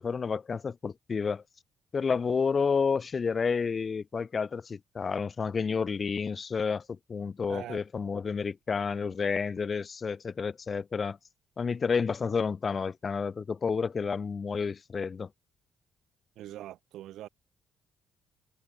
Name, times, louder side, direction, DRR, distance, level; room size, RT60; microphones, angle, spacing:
voice 1, 0.0-1.4 1.9-11.2 11.6-15.3, left 5 dB, 40° left, 0.3 m, -30 dB
voice 2, 7.5-7.8 16.4-17.3, right 13 dB, 85° right, 4.3 m, -42 dB
cardioid pair, 90°, 0 cm